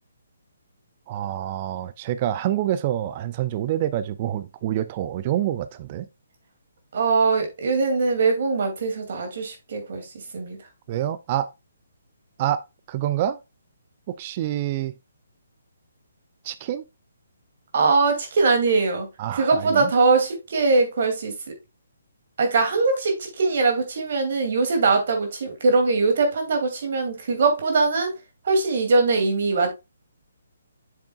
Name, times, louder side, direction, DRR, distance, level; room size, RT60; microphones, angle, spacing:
voice 1, 1.1-6.1 10.9-11.5 12.4-12.6 12.9-13.4 14.1-14.9 16.4-16.8 19.2-19.9, right 12 dB, 30° right, 0.4 m, -27 dB
voice 2, 6.9-10.6 17.7-19.1 19.3-21.4 22.4-28.1 28.4-29.7, right 3 dB, 50° right, 2.4 m, -21 dB
7.7 x 6.9 x 2.3 m
figure-of-eight pair, 135°, 0 cm